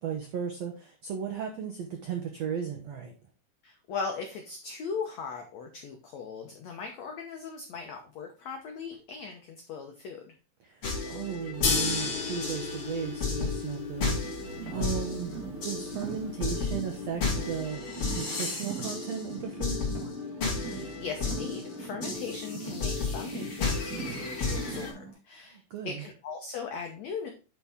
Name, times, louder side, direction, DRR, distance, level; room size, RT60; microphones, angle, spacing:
voice 1, 0.0-3.1 10.6-14.2 14.7-19.8 25.5-26.0, right 7 dB, 80° right, 3 dB, 1.5 m, -36 dB
voice 2, 3.6-10.3 20.5-27.3, left 5 dB, 80° left, 3 dB, 1.5 m, -39 dB
sound 1, 10.8-24.9, left 4 dB, 35° left, 3.5 m, -34 dB
sound 2, 11.6-17.7, left 5 dB, 60° left, 3.4 m, -34 dB
Car, 14.0-25.1, right 4 dB, 35° right, 1.3 m, -42 dB
9.8 x 4.7 x 3.6 m, 0.34 s
omnidirectional pair, 4.5 m